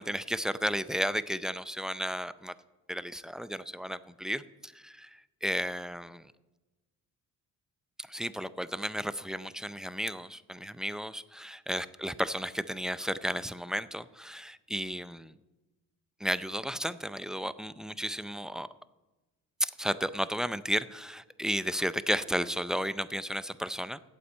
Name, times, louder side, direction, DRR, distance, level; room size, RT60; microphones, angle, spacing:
voice 1, 0.0-2.5 2.9-6.3 8.0-15.4 16.2-18.7 19.6-24.0, equal, ahead, 14 dB, 0.4 m, -33 dB
8.5 x 7.9 x 8.7 m, 1.1 s
supercardioid pair, 70°, 37 cm